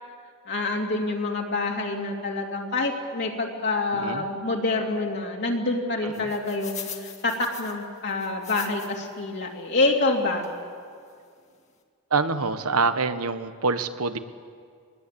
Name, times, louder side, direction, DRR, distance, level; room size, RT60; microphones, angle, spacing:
voice 1, 0.5-10.4, left 2 dB, 55° left, 0 dB, 2.9 m, -27 dB
sound 1, 6.1-9.1 9.6-9.7 10.4-10.6 11.1-11.2 11.4-11.6, left 8 dB, 30° left, 2.1 m, -41 dB
voice 2, 12.1-14.2, right 4 dB, 90° right, 10 dB, 1.2 m, -26 dB
23.0 x 20.5 x 8.5 m, 2.2 s
head